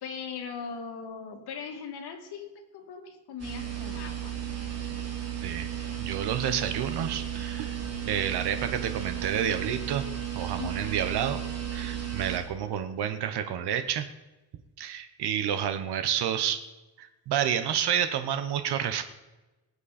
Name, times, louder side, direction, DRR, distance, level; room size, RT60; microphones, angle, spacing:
voice 1, 0.0-4.4 10.6-10.9, left 6 dB, 75° left, 1 dB, 2.6 m, -39 dB
sound 1, 3.4-12.4, right 10 dB, 40° right, 2.7 m, -34 dB
voice 2, 6.0-7.8 8.1-10.1 10.3-11.4 11.7-14.1 14.8-16.6 17.0-19.0, right 9 dB, 85° right, 10 dB, 1.1 m, -29 dB
19.5 x 8.4 x 4.3 m, 1.1 s
cardioid pair, 165°, 39 cm